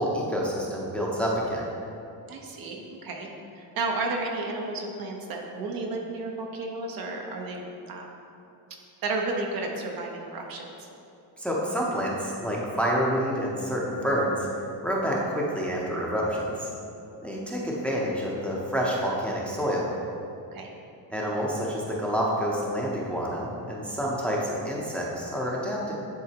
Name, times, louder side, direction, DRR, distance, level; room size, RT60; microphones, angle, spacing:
voice 1, 0.0-1.6 11.4-14.5 14.8-16.7 17.2-19.9 21.1-25.9, equal, 5° left, -4 dB, 0.7 m, -28 dB
voice 2, 2.3-3.3 3.6-8.1 9.0-10.9 20.5-20.7, right 3 dB, 55° right, 1 dB, 1.0 m, -32 dB
10.5 x 3.8 x 2.9 m, 2.7 s
cardioid pair, 130°, 41 cm